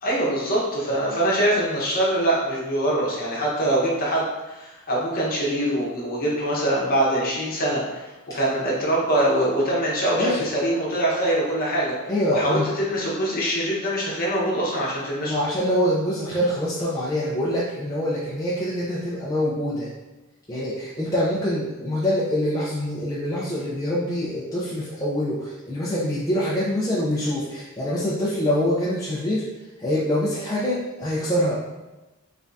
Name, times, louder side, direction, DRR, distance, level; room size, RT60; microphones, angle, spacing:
voice 1, 0.0-11.9 12.3-15.4, right 1 dB, 45° left, -5 dB, 1.0 m, -23 dB
voice 2, 12.1-12.7 15.2-19.9 20.5-29.4 29.8-31.6, equal, 15° left, -8 dB, 0.5 m, -25 dB
3.5 x 3.3 x 2.6 m, 1.1 s
head